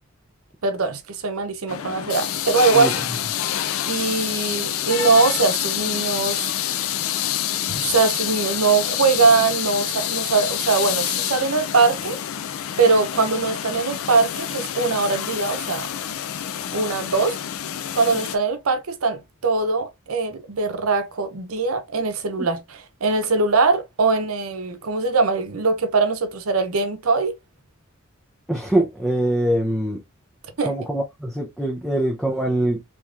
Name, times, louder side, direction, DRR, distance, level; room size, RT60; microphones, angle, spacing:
voice 1, 0.6-2.9 3.9-6.5 7.7-12.2 12.8-15.9 16.7-17.4 18.0-27.3 30.6-30.7, right 4 dB, 85° right, 0.8 m, -21 dB
sound 1, 1.7-18.4, left 11 dB, 75° left, 0.4 m, -27 dB
voice 2, 28.5-30.0 30.6-32.8, right 1 dB, ahead, 0.5 m, -23 dB
3.5 x 3.0 x 2.4 m
head